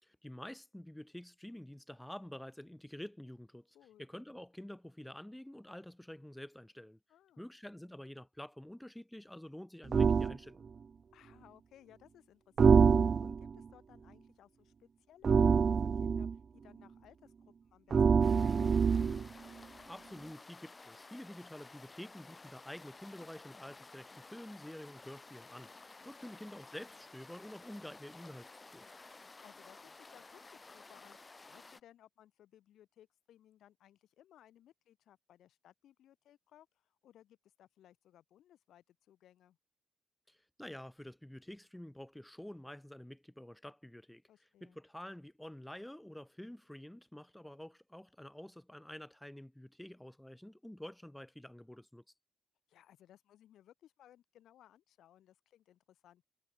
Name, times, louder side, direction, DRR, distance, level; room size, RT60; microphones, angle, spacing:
voice 1, 0.0-3.7 4.0-7.0 7.4-10.7 19.9-28.9 40.3-44.2 44.6-52.0, left 1 dB, 5° left, 2.9 m, -49 dB
voice 2, 7.1-7.5 11.1-19.0 26.0-26.4 29.4-39.6 44.3-44.8 52.7-56.2, left 11 dB, 85° left, 6.5 m, -63 dB
sound 1, 9.9-10.3 12.6-13.5 15.2-16.3 17.9-19.3, right 6 dB, 50° right, 0.4 m, -26 dB
sound 2, 18.2-31.8, left 3 dB, 30° left, 3.4 m, -54 dB
cardioid pair, 75°, 0 cm